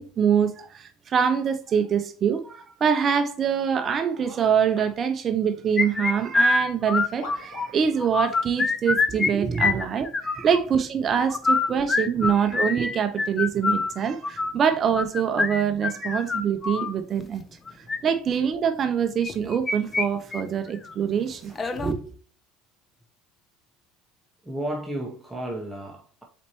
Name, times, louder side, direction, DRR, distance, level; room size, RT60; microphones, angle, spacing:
voice 1, 0.0-17.4 17.8-22.0, right 7 dB, 35° right, 0.5 m, -24 dB
sound 1, 4.7-5.0 5.8-6.3 7.2-7.7 8.8-8.9 9.7-9.9, left 3 dB, 65° left, 1.8 m, -44 dB
sound 2, 5.8-7.7 8.0-9.3 9.6-10.6 11.3-16.9 17.7-18.0 19.2-20.1 20.3-20.4 20.9-21.0 21.6-21.9, left 4 dB, 25° left, 0.5 m, -25 dB
voice 2, 11.7-12.3 21.5-22.0 24.4-26.2, right 1 dB, 5° right, 0.9 m, -35 dB
4.3 x 4.2 x 3.0 m
supercardioid pair, 115°, 0 cm